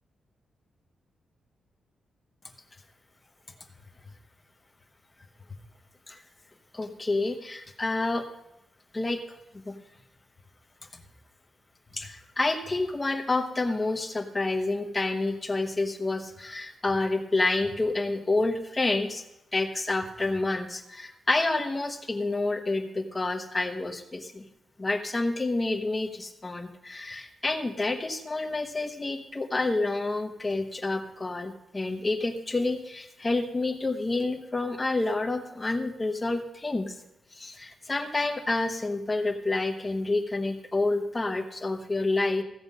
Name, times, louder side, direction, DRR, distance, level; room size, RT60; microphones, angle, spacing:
voice 1, 6.7-8.3 8.9-9.2 9.5-9.8 11.9-19.2 19.5-24.4 24.8-37.0 37.3-42.4, left 2 dB, 15° left, 5 dB, 1.1 m, -29 dB
15.5 x 6.9 x 5.4 m, 0.87 s
wide cardioid pair, 170°, 0 cm